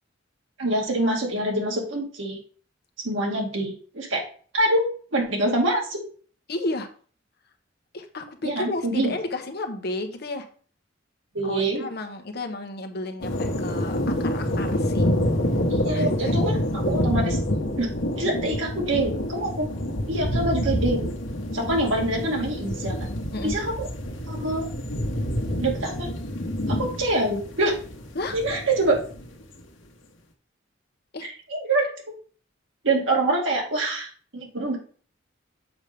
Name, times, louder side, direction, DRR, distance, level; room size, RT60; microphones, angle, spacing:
voice 1, 0.6-2.4 3.0-4.2 4.5-4.8 5.1-6.0 8.4-9.1 11.3-11.8 15.7-17.4 17.8-17.9 18.2-19.7 20.1-21.0 21.5-23.1 23.4-23.9 24.3-24.7 25.6-26.1 26.7-27.7 28.3-29.0 31.2-31.8 32.8-34.8, right 1 dB, 90° right, 0 dB, 2.2 m, -25 dB
voice 2, 6.5-6.9 7.9-10.5 11.4-15.1 15.9-16.3 23.3-23.5 28.1-28.4 31.1-31.3, left 2 dB, 55° left, 5 dB, 0.9 m, -32 dB
sound 1, 13.2-29.3, equal, 75° left, 1.2 m, -27 dB
7.1 x 5.3 x 3.5 m, 0.43 s
head